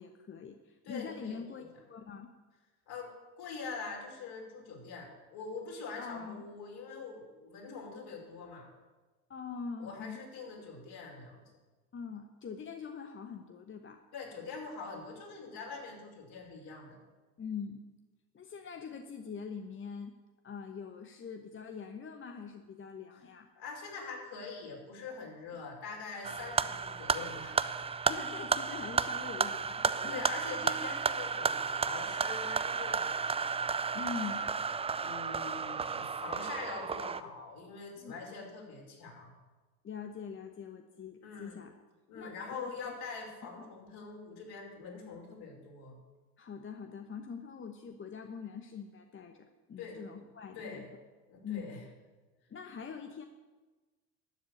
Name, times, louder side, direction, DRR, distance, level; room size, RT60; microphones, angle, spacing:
voice 1, 0.0-2.3 6.0-6.4 9.3-10.2 11.9-14.0 17.4-17.8 18.3-20.1 20.4-23.5 28.1-30.2 33.9-34.5 38.0-38.1 39.8-41.7 42.1-42.9 43.6-43.7 46.4-50.8 51.4-51.7 52.5-53.2, left 6 dB, 25° left, 5 dB, 1.1 m, -43 dB
voice 2, 0.8-1.7 2.9-8.7 9.8-11.4 14.1-17.0 23.6-27.6 30.1-33.2 35.0-39.3 41.2-41.6 42.1-45.9 49.8-50.0 50.5-50.9 51.3-51.8, left 4 dB, 55° left, 0 dB, 5.2 m, -44 dB
sound 1, 26.2-37.2, right 5 dB, 15° right, 0.5 m, -33 dB
12.5 x 7.2 x 10.0 m, 1.2 s
hypercardioid pair, 75°, 46 cm